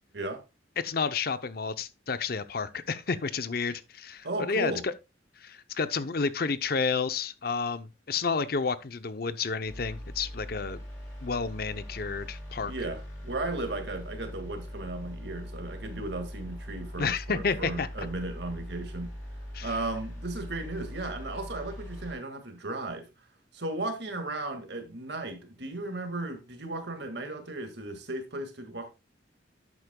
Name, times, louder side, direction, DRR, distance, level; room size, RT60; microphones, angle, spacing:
voice 1, 0.8-4.9 5.4-10.8 11.2-12.7 17.0-17.9 19.5-19.8, left 5 dB, 50° left, 0.6 m, -30 dB
voice 2, 4.2-4.8 12.6-19.1 19.6-23.1 23.5-28.9, right 2 dB, 60° right, 1.9 m, -35 dB
sound 1, 9.7-22.1, equal, 10° left, 5.3 m, -41 dB
11.5 x 8.4 x 2.2 m
head